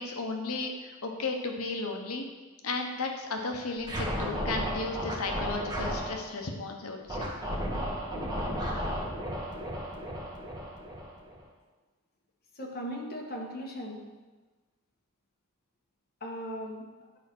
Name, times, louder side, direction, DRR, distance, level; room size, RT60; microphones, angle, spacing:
voice 1, 0.0-2.3 2.6-7.3, left 3 dB, 75° left, 3 dB, 1.0 m, -34 dB
Scratching (performance technique), 3.8-6.2 7.1-11.4, equal, 20° right, 1.6 m, -33 dB
voice 2, 12.6-14.0 16.2-16.8, equal, 45° left, -1 dB, 1.5 m, -37 dB
9.9 x 4.4 x 6.1 m, 1.3 s
head